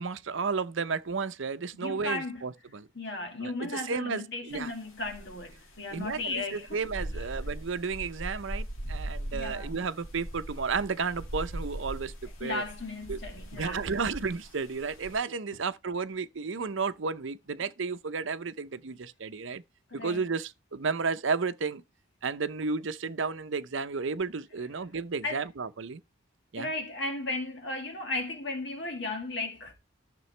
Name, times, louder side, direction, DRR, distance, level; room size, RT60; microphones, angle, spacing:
voice 1, 0.0-2.9 3.4-4.7 5.9-12.6 13.1-13.2 13.5-19.6 19.9-21.8 22.2-26.0 26.5-26.7, right 4 dB, 70° right, 0.7 m, -32 dB
voice 2, 1.7-2.4 3.0-6.8 7.1-7.3 9.3-9.7 12.4-13.9 19.9-20.2 25.2-25.4 26.6-29.7, left 2 dB, 60° left, 1.9 m, -35 dB
sound 1, 4.5-4.7 5.0-15.2, right 1 dB, 90° left, 2.1 m, -40 dB
12.5 x 6.7 x 3.3 m
head